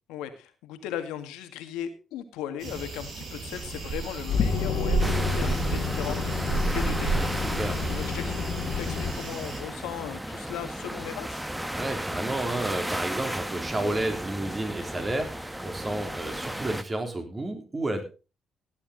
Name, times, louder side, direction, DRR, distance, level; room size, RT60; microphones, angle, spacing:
voice 1, 0.1-7.4 7.8-11.4, left 10 dB, 85° left, 8 dB, 1.7 m, -37 dB
sound 1, 2.6-9.6, right 4 dB, 65° right, 4.7 m, -32 dB
sound 2, 3.6-9.1, left 5 dB, 65° left, 1.9 m, -30 dB
sound 3, 5.0-16.8, right 1 dB, 5° right, 1.2 m, -35 dB
voice 2, 7.1-7.9 11.7-18.0, right 2 dB, 30° right, 5 dB, 3.3 m, -31 dB
17.0 x 8.5 x 3.9 m, 0.32 s
supercardioid pair, 65°, 0 cm